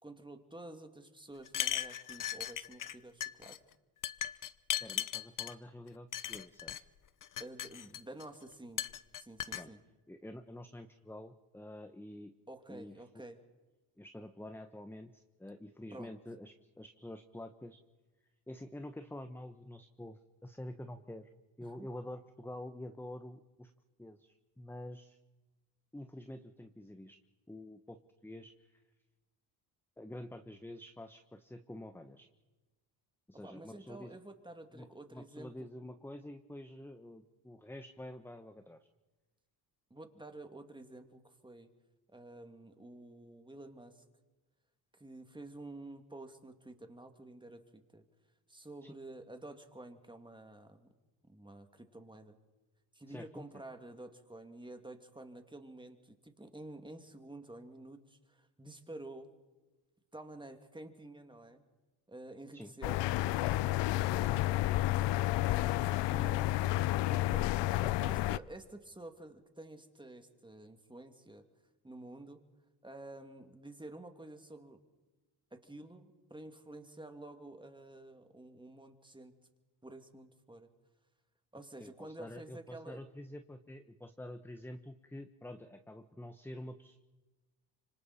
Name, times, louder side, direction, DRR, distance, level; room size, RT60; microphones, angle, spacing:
voice 1, 0.0-3.6 7.4-8.9 9.2-9.8 12.5-13.4 15.9-16.1 21.6-21.9 33.4-35.5 39.9-41.7 42.1-44.0 44.9-48.1 48.5-50.9 51.2-52.4 52.9-59.3 60.1-61.6 62.1-63.0 63.3-65.3 66.0-71.4 71.8-72.4 72.8-74.8 75.5-79.3 79.8-80.7 81.5-83.0, right 2 dB, 10° right, 6 dB, 2.6 m, -50 dB
sound 1, 1.5-3.0 3.2-3.6 4.0-5.5 6.1-6.8 7.2-8.2 8.8-9.6, left 10 dB, 45° left, 0.9 m, -37 dB
voice 2, 4.8-6.8 9.5-9.7 10.1-12.3 12.7-13.0 14.0-17.8 18.5-21.3 21.6-23.7 24.0-25.2 25.9-27.2 27.5-28.8 30.0-32.3 33.3-34.2 34.7-38.8 48.8-49.0 53.1-53.4 62.5-62.7 81.8-87.1, left 1 dB, 5° left, 8 dB, 1.2 m, -48 dB
sound 2, 62.8-68.4, left 16 dB, 75° left, 0.6 m, -30 dB
26.5 x 25.0 x 4.4 m, 1.2 s
supercardioid pair, 75°, 43 cm